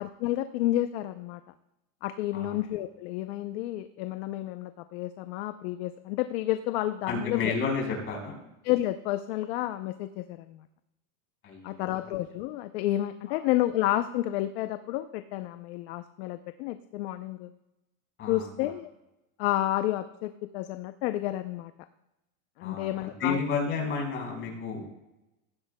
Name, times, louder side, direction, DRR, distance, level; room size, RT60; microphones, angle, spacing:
voice 1, 0.0-1.4 2.0-7.5 8.6-10.6 11.6-17.5 18.3-18.9 19.4-21.7 22.6-23.4, left 14 dB, 50° left, 10 dB, 0.6 m, -30 dB
voice 2, 7.1-8.4 11.4-12.1 13.3-13.4 18.2-18.7 22.6-24.9, left 5 dB, 30° left, -1 dB, 4.6 m, -32 dB
18.5 x 15.0 x 2.2 m, 0.96 s
supercardioid pair, 155°, 41 cm